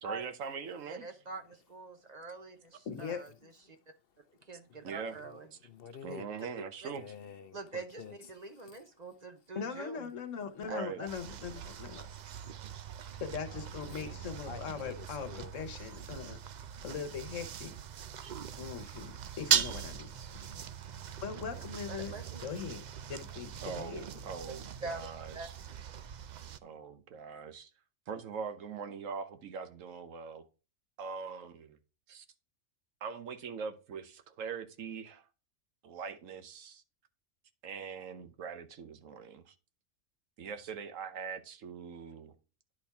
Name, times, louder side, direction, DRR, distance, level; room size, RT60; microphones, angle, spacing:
voice 1, 0.0-1.1 4.8-5.1 6.0-7.0 10.6-11.0 12.7-12.8 18.2-18.3 23.6-25.5 26.6-27.7 28.1-30.4 31.0-31.8 32.1-32.2 33.0-35.3 35.8-36.8 37.6-39.5 40.4-42.4, right 6 dB, 90° right, 1.3 m, -42 dB
voice 2, 0.9-3.8 4.5-5.5 6.6-7.0 7.5-10.1 10.6-11.1 13.9-14.4 21.9-22.4 23.7-23.8 24.8-25.5, right 3 dB, 40° right, 0.8 m, -45 dB
voice 3, 2.9-3.2 9.5-12.1 13.2-16.4 16.8-17.7 18.6-20.1 21.2-22.1 22.4-22.8 23.1-24.0, left 6 dB, 75° left, 1.4 m, -40 dB
voice 4, 4.3-6.5 6.9-8.7 12.3-12.5 13.4-15.6 20.5-20.6 20.9-21.4 22.1-22.3, left 7 dB, 55° left, 0.7 m, -51 dB
sound 1, 11.1-26.6, right 9 dB, 65° right, 0.4 m, -39 dB
10.5 x 4.3 x 3.5 m
omnidirectional pair, 1.3 m